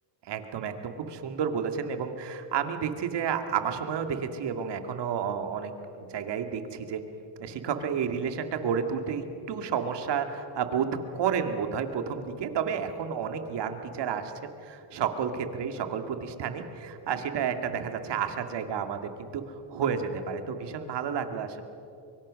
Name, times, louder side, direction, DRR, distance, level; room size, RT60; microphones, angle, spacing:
voice 1, 0.2-7.0 7.4-21.6, right 7 dB, 55° right, 7 dB, 2.3 m, -31 dB
24.0 x 23.5 x 6.4 m, 2.8 s
cardioid pair, 115°, 49 cm